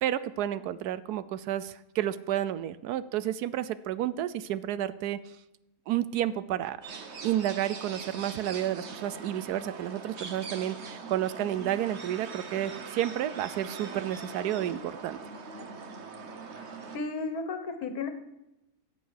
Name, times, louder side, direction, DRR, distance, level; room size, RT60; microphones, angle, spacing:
voice 1, 0.0-5.2 5.9-15.2, right 12 dB, 80° right, 15 dB, 1.2 m, -31 dB
sound 1, 6.8-17.0, right 4 dB, 50° right, 1.3 m, -42 dB
voice 2, 16.9-18.1, left 4 dB, 70° left, 7 dB, 1.7 m, -33 dB
14.5 x 8.1 x 4.8 m, 0.93 s
omnidirectional pair, 1.7 m